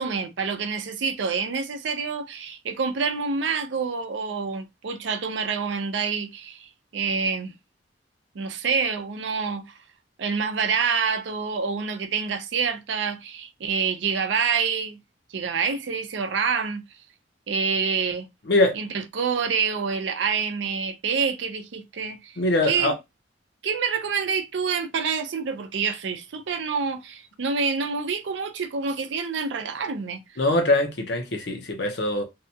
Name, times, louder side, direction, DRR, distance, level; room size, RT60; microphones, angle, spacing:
voice 1, 0.0-7.5 8.3-9.7 10.2-15.0 15.3-16.8 17.5-18.3 18.7-22.4 22.6-22.9 23.6-30.2, right 5 dB, 80° right, 0.5 m, -27 dB
voice 2, 22.4-22.9 30.4-32.2, left 2 dB, 65° left, 0.7 m, -22 dB
2.7 x 2.2 x 2.7 m
head